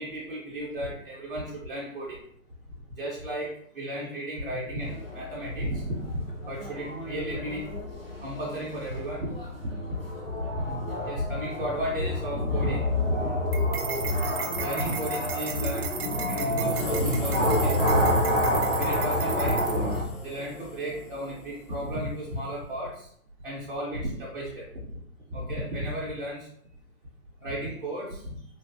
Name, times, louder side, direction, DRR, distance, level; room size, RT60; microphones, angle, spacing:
voice 1, 0.0-2.2 3.0-7.6 8.2-9.3 9.6-9.8 10.2-10.8 11.0-13.3 14.1-14.3 14.6-15.9 16.1-18.1 18.8-23.1 23.4-24.9 25.3-26.5 27.4-28.4, equal, 40° right, -6 dB, 0.5 m, -34 dB
sound 1, 4.8-20.0, left 1 dB, 45° left, 0.4 m, -28 dB
sound 2, 13.5-20.0, right 7 dB, 85° right, 0.6 m, -36 dB
sound 3, 16.7-22.7, left 2 dB, 80° left, 0.8 m, -41 dB
3.2 x 2.3 x 2.5 m, 0.65 s
hypercardioid pair, 170°, 44 cm